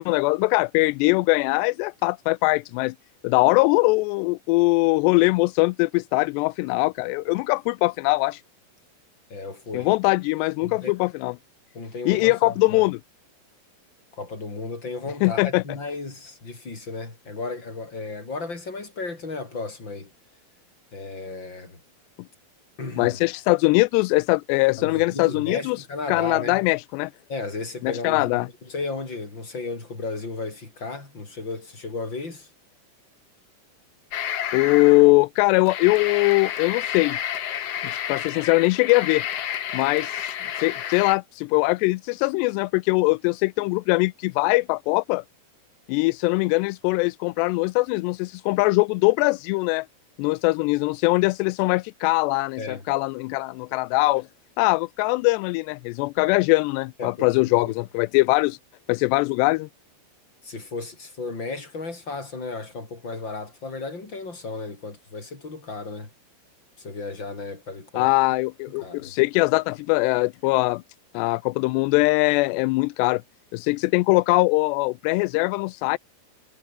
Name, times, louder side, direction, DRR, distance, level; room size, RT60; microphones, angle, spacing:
voice 1, 0.0-2.9 3.2-8.4 9.7-11.4 12.1-13.0 15.2-15.6 23.0-25.8 26.1-27.1 27.8-28.5 34.5-37.2 37.9-39.2 39.7-45.2 45.9-49.9 50.2-54.3 54.6-58.6 58.9-59.7 68.0-70.8 71.1-73.2 73.5-76.0, left 24 dB, 85° left, 2.7 m, -21 dB
voice 2, 9.3-9.9 10.6-10.9 11.7-12.8 14.1-20.1 20.9-21.8 22.8-23.2 24.8-26.6 27.3-32.5 52.6-52.8 57.0-57.7 60.4-66.1 66.8-68.1 68.8-69.1, left 3 dB, 25° left, 6.3 m, -34 dB
sound 1, 34.1-35.1 35.6-41.2, left 9 dB, 55° left, 1.7 m, -30 dB
omnidirectional pair, 4.8 m